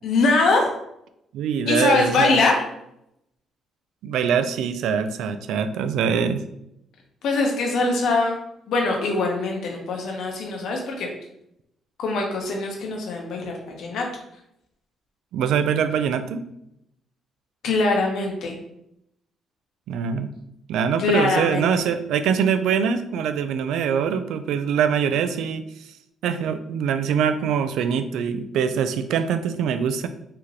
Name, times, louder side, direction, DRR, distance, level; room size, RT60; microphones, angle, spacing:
voice 1, 0.0-0.7 1.7-2.6 7.2-8.4 8.7-11.1 12.0-14.0 17.6-18.6 21.0-21.8, left 3 dB, 70° left, 1 dB, 0.7 m, -22 dB
voice 2, 1.3-2.4 4.0-6.4 15.3-16.4 19.9-20.3 20.7-25.6 26.2-30.1, right 7 dB, 85° right, 10 dB, 0.3 m, -23 dB
3.1 x 2.8 x 3.6 m, 0.79 s
cardioid pair, 130°, 0 cm